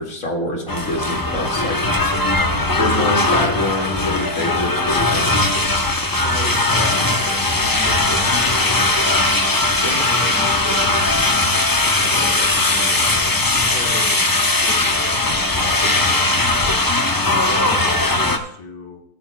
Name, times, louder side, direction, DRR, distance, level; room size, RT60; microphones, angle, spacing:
voice 1, 0.0-2.0 2.5-5.3 9.8-10.0, left 1 dB, 60° left, 0 dB, 2.5 m, -26 dB
sound 1, 0.7-18.4, left 2 dB, 25° left, 0.5 m, -19 dB
voice 2, 6.2-16.8 17.4-19.0, left 2 dB, 80° left, 1 dB, 2.0 m, -35 dB
20.0 x 9.0 x 2.3 m, 0.72 s
omnidirectional pair, 1.6 m